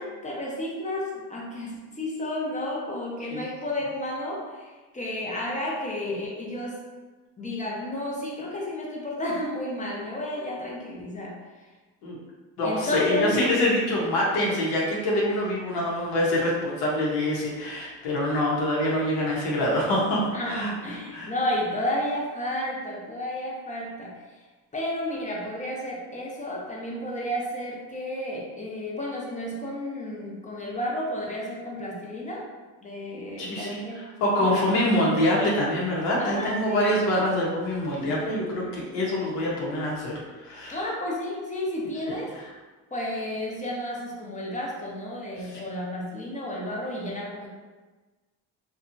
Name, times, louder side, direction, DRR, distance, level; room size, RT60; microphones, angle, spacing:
voice 1, 0.0-6.8 7.4-11.7 12.6-13.3 20.3-24.2 24.7-32.5 32.8-34.0 34.4-34.6 36.2-36.8 40.7-42.3 42.9-47.5, left 1 dB, 20° left, -3 dB, 0.6 m, -32 dB
voice 2, 12.6-20.7 21.1-21.3 33.4-33.8 34.2-40.1 40.4-40.8 45.5-45.6, left 1 dB, 90° left, -4 dB, 0.9 m, -25 dB
2.8 x 2.3 x 2.6 m, 1.3 s
cardioid pair, 100°, 40 cm